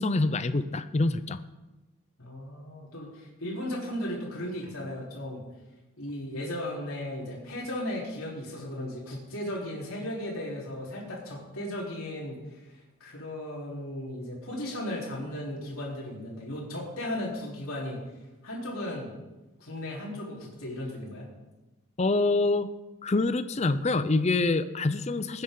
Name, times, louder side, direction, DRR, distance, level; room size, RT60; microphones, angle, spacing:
voice 1, 0.0-1.4 22.0-22.7 23.0-25.4, left 3 dB, 30° left, 12 dB, 0.5 m, -26 dB
voice 2, 2.2-5.4 6.0-18.0 18.4-19.1 19.6-21.2, left 1 dB, 75° left, -3 dB, 3.9 m, -36 dB
19.5 x 9.7 x 3.9 m, 1.1 s
head